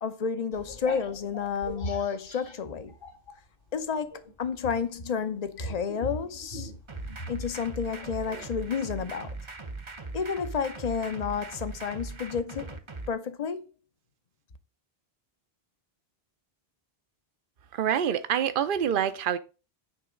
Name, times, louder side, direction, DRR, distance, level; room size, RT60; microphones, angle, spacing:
voice 1, 0.0-2.9 3.7-6.7 7.3-9.3 10.1-12.8 13.1-13.6, left 6 dB, 45° left, 0.8 m, -31 dB
sound 1, 0.5-3.4 3.8-8.5, right 1 dB, 60° left, 2.1 m, -41 dB
sound 2, 6.9-13.1, right 3 dB, 30° right, 0.9 m, -40 dB
voice 2, 17.7-19.4, right 9 dB, 60° right, 0.8 m, -26 dB
9.4 x 3.4 x 5.1 m
omnidirectional pair, 1.1 m